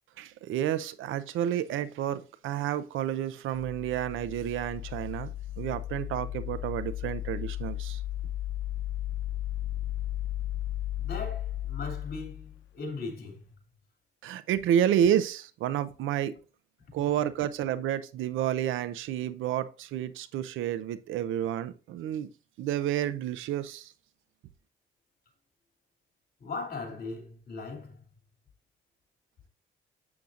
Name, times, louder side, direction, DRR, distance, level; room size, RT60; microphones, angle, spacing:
voice 1, 0.2-8.0 14.2-16.3 16.9-22.3 22.6-23.9, right 10 dB, 85° right, 0.6 m, -30 dB
sound 1, 3.5-12.6, left 13 dB, 75° left, 0.8 m, -35 dB
voice 2, 11.0-13.4 26.4-28.0, left 3 dB, 50° left, 2.7 m, -38 dB
7.7 x 7.1 x 2.5 m
cardioid pair, 90°, 20 cm